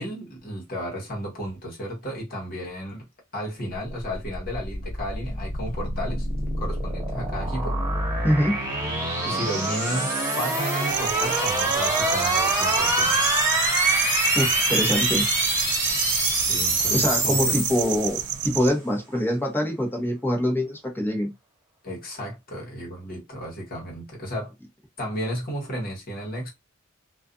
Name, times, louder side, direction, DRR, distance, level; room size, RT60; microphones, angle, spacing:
voice 1, 0.0-3.0 3.3-6.3 6.6-7.8 9.3-13.1 16.2-17.6 21.8-24.5 25.0-26.5, equal, 45° left, 1.2 m, -33 dB
sound 1, 4.1-18.4, right 2 dB, 15° right, 1.5 m, -25 dB
voice 2, 8.2-8.6 14.3-15.3 16.9-21.3, equal, 10° left, 0.9 m, -24 dB
sound 2, 10.9-18.7, right 12 dB, 55° right, 0.3 m, -31 dB
2.4 x 2.4 x 2.5 m
head